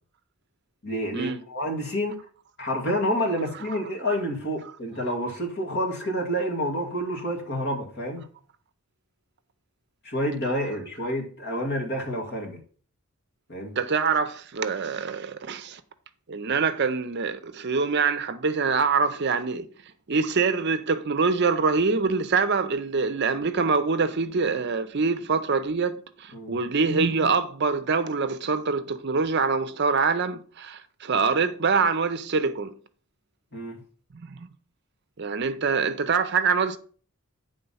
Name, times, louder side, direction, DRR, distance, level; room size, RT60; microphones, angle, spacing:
voice 1, 0.8-2.2 2.6-8.2 10.0-12.6 13.5-13.7 26.3-26.5 33.5-33.8, equal, 50° left, 2.0 m, -29 dB
voice 2, 13.8-15.8 16.3-19.7 20.1-32.7 34.1-34.5 35.2-36.8, right 4 dB, 50° right, 0.5 m, -25 dB
9.1 x 3.8 x 5.5 m
head